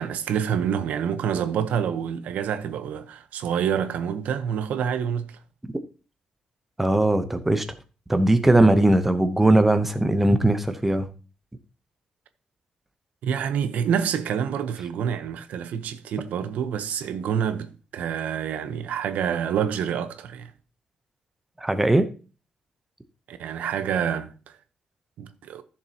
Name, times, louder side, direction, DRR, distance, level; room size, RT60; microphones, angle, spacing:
voice 1, 0.0-5.4 13.2-20.5 23.3-24.6 25.2-25.6, right 8 dB, 85° right, 0.8 m, -27 dB
voice 2, 6.8-7.7 8.1-11.1 21.6-22.1, right 1 dB, 10° right, 0.8 m, -19 dB
14.0 x 6.9 x 2.9 m
wide cardioid pair, 165°, 3 cm